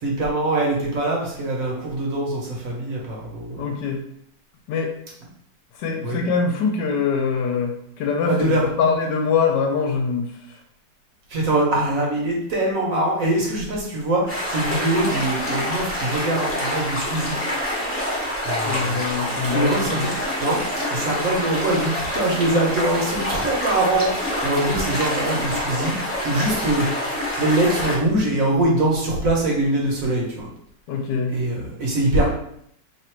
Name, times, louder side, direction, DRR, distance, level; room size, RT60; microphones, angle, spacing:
voice 1, 0.0-3.6 6.0-6.2 8.3-8.7 11.3-14.2 14.5-17.3 18.4-19.0 19.5-20.6 20.9-25.9 26.2-26.9 27.1-30.5 31.3-32.3, right 1 dB, 55° right, -3 dB, 1.1 m, -23 dB
voice 2, 3.6-4.0 4.7-4.9 5.8-10.3 18.6-20.1 30.9-31.3, left 5 dB, 80° left, 3 dB, 1.3 m, -23 dB
sound 1, 14.3-28.0, left 1 dB, 10° left, 0.6 m, -26 dB
3.1 x 2.5 x 4.4 m, 0.69 s
omnidirectional pair, 1.9 m